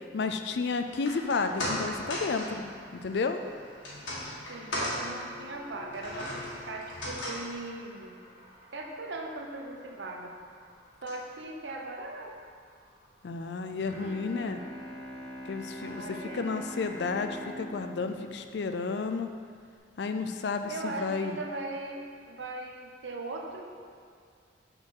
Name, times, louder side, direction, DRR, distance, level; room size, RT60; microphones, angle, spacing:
voice 1, 0.1-2.7 2.9-3.4 13.2-14.6 15.5-19.3 20.0-21.4, left 4 dB, 60° left, 7 dB, 0.4 m, -32 dB
sound 1, 0.9-13.3 13.6-13.7, left 1 dB, 90° left, 1.7 m, -40 dB
voice 2, 4.5-8.2 8.7-10.3 11.0-12.3 15.8-16.5 20.7-23.7, right 2 dB, 70° right, 1 dB, 0.8 m, -39 dB
Bowed string instrument, 13.8-19.4, equal, ahead, 1.6 m, -43 dB
6.3 x 3.9 x 6.3 m, 2.2 s
head